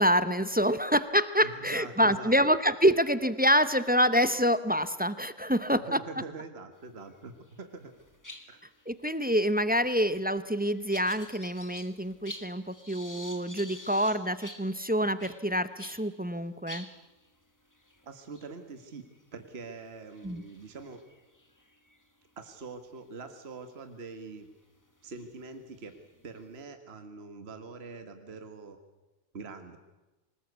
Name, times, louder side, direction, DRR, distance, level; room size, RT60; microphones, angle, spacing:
voice 1, 0.0-6.0 8.9-16.9 20.2-20.4, equal, 10° right, 13 dB, 0.5 m, -26 dB
voice 2, 1.4-2.3 5.7-7.9 8.5-8.6 18.0-19.1 19.3-21.0 22.4-24.5 25.0-25.9 26.2-28.8 29.3-29.8, right 4 dB, 45° right, 7 dB, 1.8 m, -44 dB
sound 1, 7.1-7.6 7.9-16.1 16.4-16.5 16.7-22.5 23.1-23.3 24.2-24.3 24.9-26.6, left 1 dB, 15° left, 1.7 m, -49 dB
24.5 x 20.0 x 8.2 m, 1.1 s
omnidirectional pair, 1.5 m